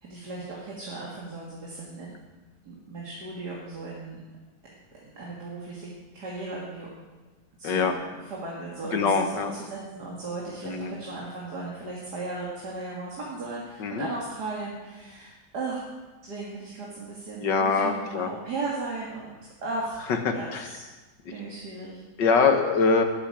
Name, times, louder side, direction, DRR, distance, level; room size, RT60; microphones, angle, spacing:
voice 1, 0.0-2.1 2.6-4.2 5.0-5.9 6.1-6.9 7.6-15.8 16.2-19.3 19.6-20.0 20.3-20.8 21.3-22.0, right 3 dB, 65° right, -4 dB, 2.8 m, -36 dB
voice 2, 8.9-9.5 10.6-11.0 13.8-14.1 17.4-18.3 20.1-20.7 22.2-23.0, left 5 dB, 75° left, 5 dB, 2.0 m, -23 dB
19.5 x 8.8 x 5.0 m, 1.2 s
omnidirectional pair, 1.9 m